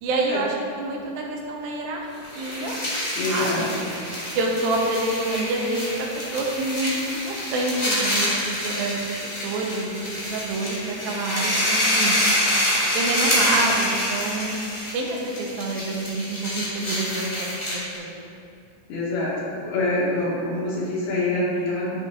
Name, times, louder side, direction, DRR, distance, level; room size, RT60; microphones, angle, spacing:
voice 1, 0.0-2.1 2.4-2.8 3.3-3.7 4.4-12.2 12.9-14.6 14.9-18.2, right 2 dB, 80° right, -1 dB, 2.7 m, -27 dB
sound 1, 2.2-18.0, equal, 30° left, 1.4 m, -26 dB
voice 2, 3.2-3.8 18.9-19.3 19.6-22.0, left 2 dB, 80° left, -7 dB, 3.9 m, -25 dB
13.0 x 7.4 x 2.6 m, 2.6 s
omnidirectional pair, 4.3 m